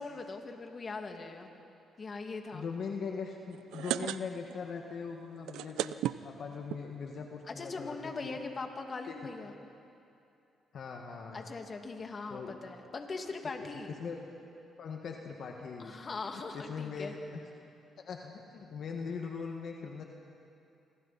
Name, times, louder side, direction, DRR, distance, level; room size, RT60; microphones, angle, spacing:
voice 1, 0.0-1.5 2.0-2.6 7.5-9.5 11.3-13.9 15.8-17.1, left 3 dB, 40° left, 3 dB, 2.3 m, -40 dB
voice 2, 2.5-5.9 6.2-8.4 9.1-9.2 10.7-11.5 12.3-12.6 13.5-14.2 14.8-15.9 16.5-17.4 18.0-20.0, left 5 dB, 60° left, 1 dB, 1.8 m, -40 dB
sound 1, 3.5-4.6 4.9-5.0 5.3-6.8 7.5-7.6 7.9-8.0 8.1-8.4, right 13 dB, 85° right, 0.5 m, -35 dB
27.5 x 25.5 x 4.3 m, 2.7 s
cardioid pair, 85°, 0 cm